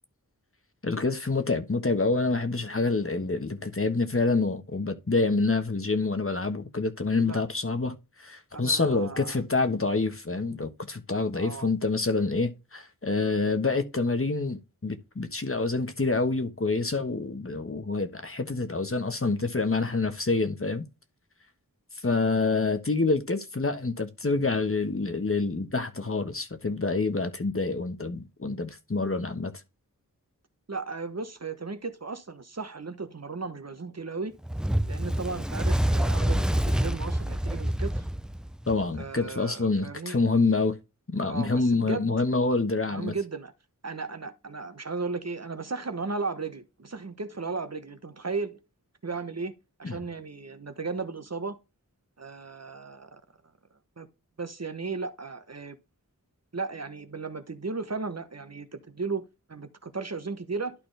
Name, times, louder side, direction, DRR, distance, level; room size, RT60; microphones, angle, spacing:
voice 1, 0.8-20.9 22.0-29.5 38.7-40.8 41.1-43.1 49.8-50.0, left 3 dB, 40° left, 1.3 m, -27 dB
voice 2, 8.5-9.4 11.3-11.7 30.7-34.3 34.9-38.0 39.0-40.2 41.3-42.1 42.9-43.5 43.8-48.6 49.0-49.5 49.8-51.6 52.2-53.2 54.0-54.1 54.4-55.8 56.5-60.7, right 4 dB, 50° right, 1.1 m, -35 dB
Fire, 34.4-39.0, right 1 dB, ahead, 0.6 m, -27 dB
12.0 x 4.2 x 3.3 m
wide cardioid pair, 60°, 34 cm